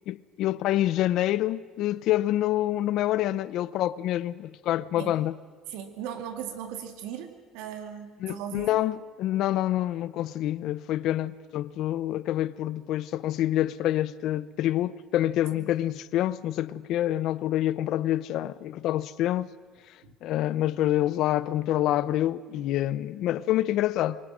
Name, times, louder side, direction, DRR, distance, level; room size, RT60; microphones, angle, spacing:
voice 1, 0.1-5.3 8.2-19.5 20.2-24.2, left 13 dB, 65° left, 0.7 m, -27 dB
voice 2, 5.7-8.8 15.5-15.7 20.0-20.1, right 9 dB, 90° right, 2.4 m, -38 dB
25.0 x 24.0 x 6.3 m
cardioid pair, 135°, 0 cm